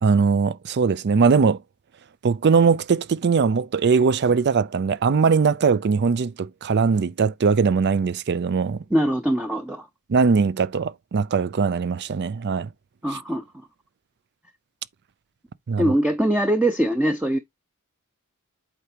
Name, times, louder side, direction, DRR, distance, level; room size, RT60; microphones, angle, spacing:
voice 1, 0.0-1.6 2.2-8.9 10.1-12.7 15.7-15.9, right 5 dB, 50° right, 0.4 m, -20 dB
voice 2, 8.9-9.9 13.0-13.4 15.8-17.4, right 1 dB, 5° right, 0.6 m, -22 dB
8.3 x 4.7 x 2.8 m
head